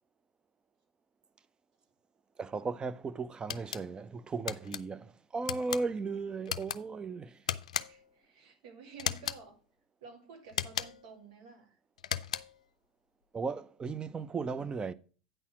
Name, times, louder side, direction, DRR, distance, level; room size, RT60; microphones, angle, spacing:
voice 1, 2.4-7.4 13.3-14.9, right 4 dB, 25° right, 0.6 m, -36 dB
sound 1, 3.5-3.8 4.5-4.8 5.4-5.8 6.4-6.8 7.5-8.1 9.0-9.4 10.5-11.1 12.0-12.6, left 9 dB, 85° left, 0.4 m, -36 dB
voice 2, 7.9-9.6 10.0-11.8, right 5 dB, 70° right, 2.2 m, -52 dB
9.0 x 4.2 x 6.0 m
hypercardioid pair, 85°, 4 cm